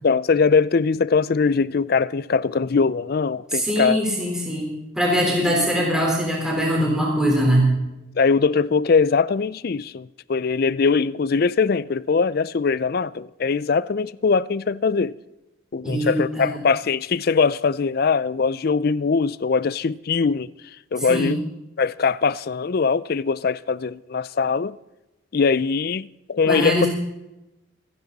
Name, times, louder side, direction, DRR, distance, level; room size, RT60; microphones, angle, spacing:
voice 1, 0.0-4.0 8.2-15.2 15.7-20.5 20.9-21.4 21.8-24.8 25.3-26.9, left 5 dB, 50° left, 0.4 m, -21 dB
voice 2, 3.5-7.8 15.8-16.6 21.0-21.3 26.4-26.9, equal, 5° right, 4.0 m, -22 dB
25.5 x 10.5 x 4.1 m
head